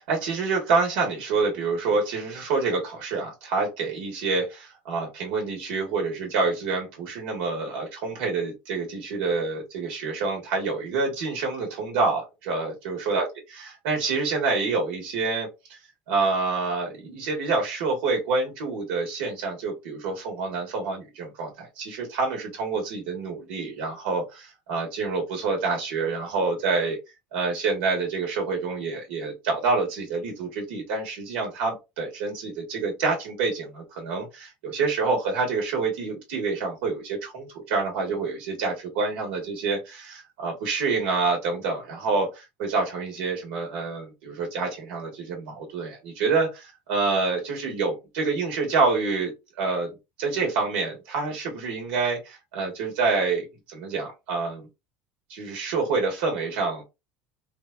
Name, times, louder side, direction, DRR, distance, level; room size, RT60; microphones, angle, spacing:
voice 1, 0.0-13.3 13.6-15.8 16.1-27.0 27.3-49.9 50.2-54.7 55.3-56.8, right 4 dB, 85° right, 1 dB, 1.2 m, -27 dB
3.2 x 2.3 x 2.2 m, 0.24 s
supercardioid pair, 125°, 6 cm